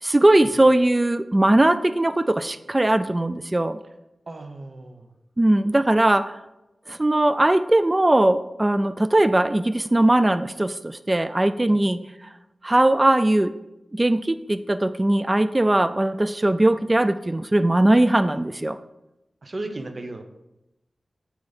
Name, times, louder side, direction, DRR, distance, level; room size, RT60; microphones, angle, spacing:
voice 1, 0.0-3.8 5.4-6.4 6.9-12.0 12.6-13.5 13.9-18.8, right 1 dB, 25° right, 13 dB, 0.3 m, -20 dB
voice 2, 4.3-5.1 11.7-11.8 18.3-18.4 19.4-20.2, right 2 dB, 50° right, 6 dB, 0.9 m, -35 dB
8.6 x 4.6 x 4.1 m, 0.93 s
wide cardioid pair, 65°, 0 cm